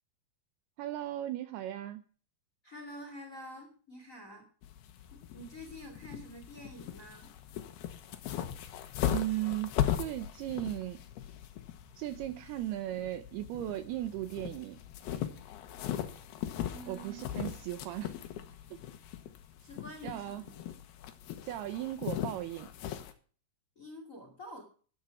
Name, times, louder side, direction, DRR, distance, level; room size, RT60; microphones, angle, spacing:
voice 1, 0.8-2.0 9.1-11.0 12.0-14.8 16.8-18.2 18.7-18.8 20.0-20.4 21.4-22.7, right 14 dB, 80° right, 11 dB, 2.4 m, -37 dB
voice 2, 2.6-4.5 5.1-7.3 16.7-17.2 19.6-20.8 23.8-24.6, equal, 25° left, 4 dB, 1.9 m, -48 dB
sound 1, 4.6-23.1, left 11 dB, 70° left, 2.9 m, -39 dB
13.0 x 10.0 x 4.7 m, 0.41 s
omnidirectional pair, 5.1 m